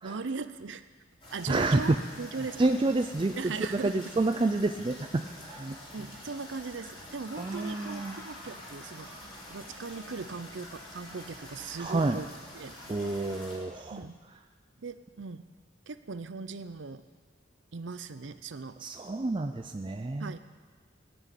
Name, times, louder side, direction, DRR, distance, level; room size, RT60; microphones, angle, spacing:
voice 1, 0.0-0.8 1.3-2.6 3.4-4.0 5.9-9.1 9.5-12.3 12.5-12.8 13.9-14.2 14.8-15.5 15.9-17.1 17.7-18.8 20.2-20.4, right 4 dB, 70° right, 12 dB, 0.6 m, -39 dB
sound 1, 1.2-13.6, left 1 dB, 25° left, 3.7 m, -46 dB
voice 2, 1.5-2.0 2.6-5.8 7.4-8.2 11.8-12.2 12.9-14.0 18.8-20.3, right 2 dB, 25° right, 6 dB, 0.4 m, -29 dB
18.0 x 6.2 x 9.1 m, 1.5 s
head